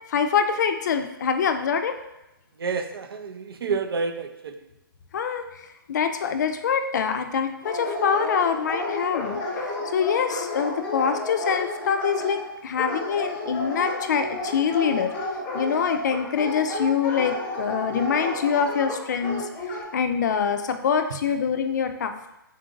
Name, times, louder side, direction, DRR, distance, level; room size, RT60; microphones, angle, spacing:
voice 1, 0.1-2.0 5.1-15.1 15.5-19.5 19.9-22.4, left 7 dB, 50° left, 7 dB, 0.4 m, -25 dB
voice 2, 2.6-4.5, right 5 dB, 75° right, 7 dB, 0.5 m, -29 dB
Dog, 7.6-19.8, left 1 dB, 15° left, 0.7 m, -31 dB
3.8 x 2.5 x 3.8 m, 0.93 s
hypercardioid pair, 155°, 12 cm